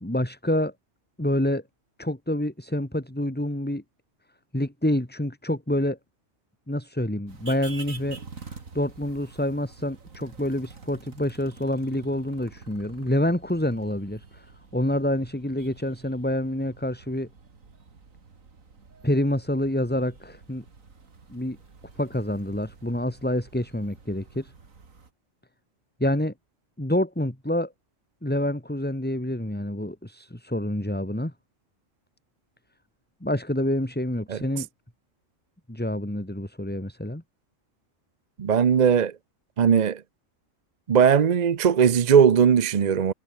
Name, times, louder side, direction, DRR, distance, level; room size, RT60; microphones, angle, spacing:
voice 1, 0.0-0.7 1.2-1.6 2.0-3.8 4.5-6.0 6.7-14.5 14.7-17.3 19.0-20.6 21.3-21.6 22.0-24.5 26.0-26.3 26.8-27.7 28.2-31.3 33.2-34.7 35.7-37.2, left 1 dB, 5° left, 2.3 m, -27 dB
sound 1, 7.3-25.1, right 4 dB, 80° right, 2.8 m, -48 dB
voice 2, 38.4-39.1 39.6-40.0 40.9-43.1, right 7 dB, 45° right, 0.6 m, -19 dB
omnidirectional pair, 1.4 m